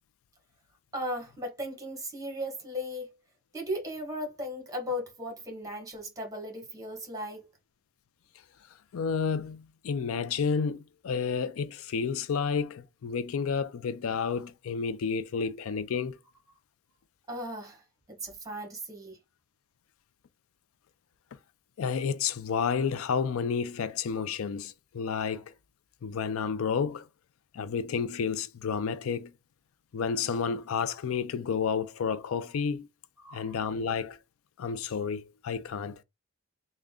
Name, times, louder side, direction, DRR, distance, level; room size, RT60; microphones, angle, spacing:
voice 1, 0.9-3.1 3.5-7.4 17.3-17.8 18.1-19.2 24.1-24.3 33.2-33.6, equal, 15° right, 1.2 m, -37 dB
voice 2, 8.9-16.2 21.8-25.4 26.0-27.1 27.5-29.3 29.9-32.9 33.3-34.2 34.6-36.0, left 6 dB, 85° left, 0.4 m, -30 dB
3.5 x 2.2 x 3.6 m
head